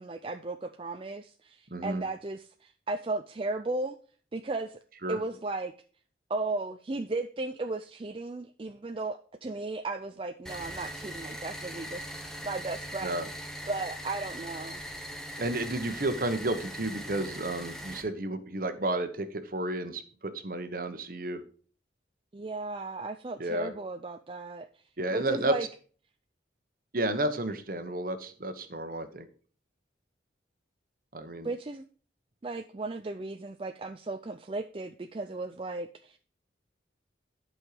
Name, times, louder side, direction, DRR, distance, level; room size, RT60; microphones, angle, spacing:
voice 1, 0.0-4.0 4.3-4.8 5.1-5.7 6.3-13.3 13.7-14.8 22.3-24.8 25.1-25.7 31.4-31.8 32.4-36.2, right 3 dB, 30° right, 8 dB, 0.4 m, -35 dB
voice 2, 1.7-2.0 5.0-5.2 13.0-13.2 15.4-21.4 23.4-23.7 25.0-25.5 26.9-29.3 31.1-31.5, right 1 dB, 50° right, 9 dB, 1.1 m, -32 dB
sound 1, 10.4-18.0, equal, 5° left, 1.1 m, -40 dB
11.5 x 5.5 x 4.9 m, 0.43 s
head